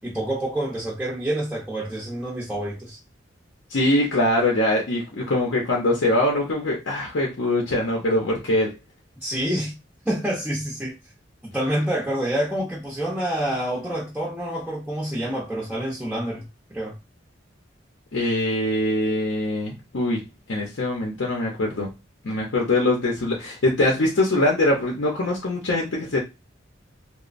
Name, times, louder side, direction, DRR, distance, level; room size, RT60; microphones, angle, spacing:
voice 1, 0.0-3.0 9.2-9.7 10.1-10.9 11.4-16.4 16.7-16.9, right 1 dB, 5° right, 0.6 m, -27 dB
voice 2, 3.7-8.8 18.1-20.2 20.5-21.9 22.2-26.2, left 1 dB, 75° left, 0.6 m, -23 dB
3.0 x 2.0 x 2.4 m
head